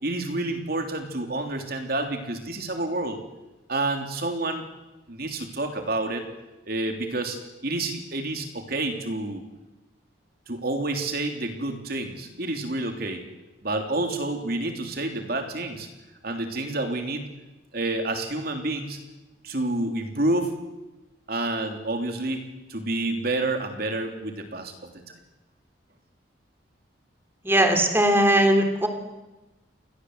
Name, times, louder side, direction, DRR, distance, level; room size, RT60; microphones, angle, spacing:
voice 1, 0.0-3.2 3.7-4.6 5.1-6.3 6.7-9.4 10.5-13.2 13.6-15.9 16.2-17.3 17.7-19.0 19.4-20.5 21.3-24.9, right 2 dB, 50° right, 4 dB, 3.4 m, -29 dB
voice 2, 27.4-28.9, right 1 dB, 10° right, 5 dB, 3.4 m, -19 dB
30.0 x 23.0 x 8.1 m, 1.1 s
head